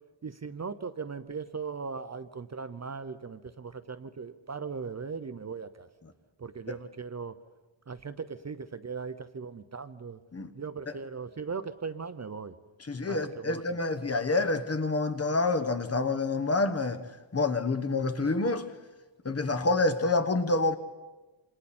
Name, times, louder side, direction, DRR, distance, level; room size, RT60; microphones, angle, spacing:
voice 1, 0.2-5.9 6.4-7.4 7.9-10.2 10.5-12.5 13.1-13.8, right 5 dB, 35° right, 0.8 m, -38 dB
voice 2, 12.9-17.0 17.3-18.7 19.2-20.8, left 3 dB, 30° left, 1.3 m, -27 dB
28.0 x 27.0 x 4.4 m
wide cardioid pair, 105°, 49 cm